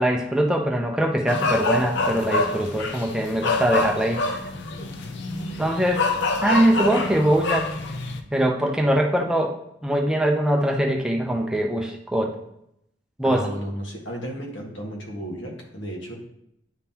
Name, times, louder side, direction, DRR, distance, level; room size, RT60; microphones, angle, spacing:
voice 1, 0.0-4.2 5.6-6.1 6.4-7.7 8.3-9.5 9.8-12.3 13.2-13.5, right 1 dB, 5° right, 1 dB, 0.5 m, -22 dB
sound 1, 1.3-8.2, left 3 dB, 65° left, 0.5 m, -26 dB
voice 2, 13.2-16.1, right 1 dB, 80° left, 0 dB, 1.5 m, -33 dB
9.7 x 3.6 x 2.8 m, 0.78 s
head